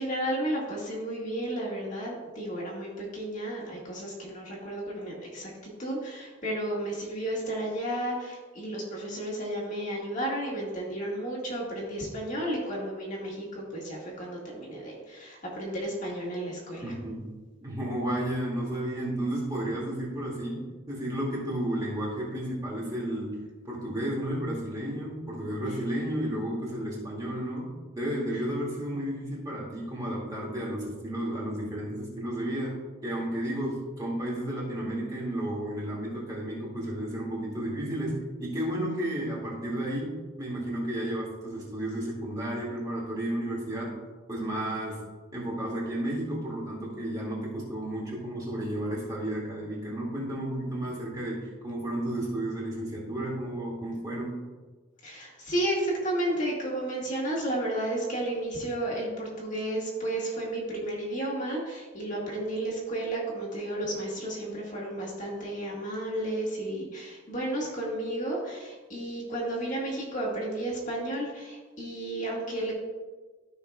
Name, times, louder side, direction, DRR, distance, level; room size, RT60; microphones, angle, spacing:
voice 1, 0.0-16.9 55.0-72.7, right 1 dB, 35° left, -4 dB, 1.7 m, -32 dB
voice 2, 16.8-17.3 17.6-44.0 44.3-45.0 45.3-54.4, right 1 dB, 20° right, -5 dB, 2.1 m, -32 dB
13.5 x 5.6 x 2.3 m, 1.3 s
head